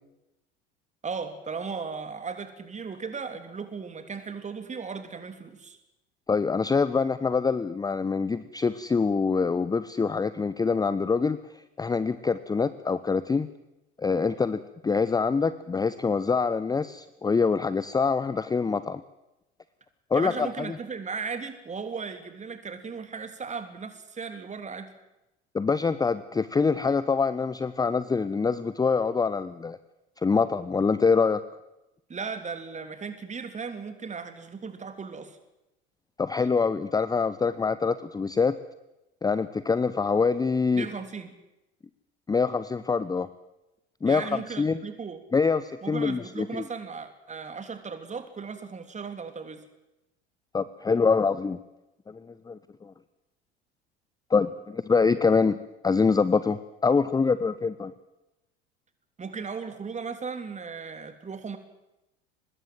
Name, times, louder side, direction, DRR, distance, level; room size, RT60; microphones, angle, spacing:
voice 1, 1.0-5.8 20.1-24.9 32.1-35.4 40.7-41.3 44.0-45.2 45.8-49.6 59.2-61.6, right 5 dB, 20° right, 9 dB, 3.2 m, -36 dB
voice 2, 6.3-13.5 14.0-19.0 20.1-20.8 25.5-29.8 30.2-31.4 36.2-38.6 39.2-40.9 42.3-43.3 44.0-44.8 45.3-46.6 50.5-51.6 52.1-52.9 54.3-55.6 55.8-57.9, left 5 dB, 10° left, 15 dB, 0.8 m, -25 dB
24.0 x 20.5 x 7.8 m, 0.94 s
figure-of-eight pair, 70°, 33 cm